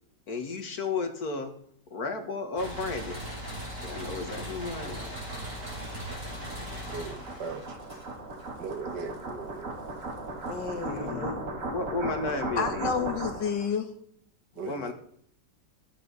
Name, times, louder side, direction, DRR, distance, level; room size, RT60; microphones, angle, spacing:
voice 1, 0.3-1.5 1.9-3.2 3.8-5.2 10.8-12.9 14.6-14.9, left 3 dB, 55° left, 2.1 m, -33 dB
sound 1, 2.6-8.4, equal, 30° right, 5.9 m, -39 dB
sound 2, 3.7-13.7, right 2 dB, 45° right, 2.3 m, -38 dB
voice 2, 6.9-7.8 8.6-9.8 14.6-14.9, right 4 dB, 65° right, 2.0 m, -38 dB
voice 3, 10.5-11.4 12.6-13.9, left 6 dB, 75° left, 2.1 m, -31 dB
14.5 x 12.5 x 4.1 m
omnidirectional pair, 1.9 m